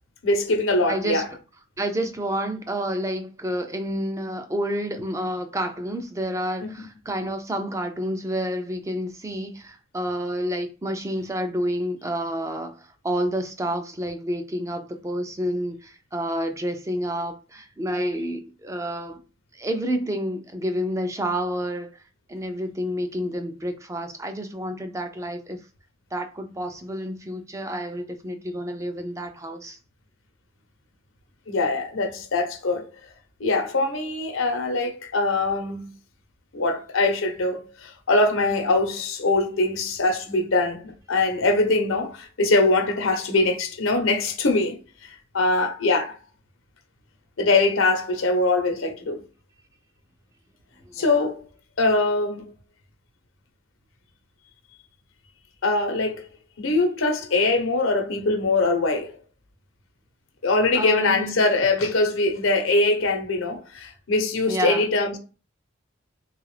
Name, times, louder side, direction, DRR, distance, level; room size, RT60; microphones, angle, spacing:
voice 1, 0.2-1.3 6.6-6.7 31.5-32.9 33.4-35.9 36.5-46.2 47.4-49.2 50.9-51.4 51.8-52.5 55.6-56.3 56.6-59.1 60.4-65.2, left 2 dB, 90° left, 0.8 m, -22 dB
voice 2, 0.9-1.2 1.8-19.2 19.5-22.0 22.3-25.6 26.1-29.8 50.9-51.3 60.7-61.4 64.5-64.8, equal, 15° right, 0.4 m, -29 dB
3.5 x 2.4 x 3.2 m
head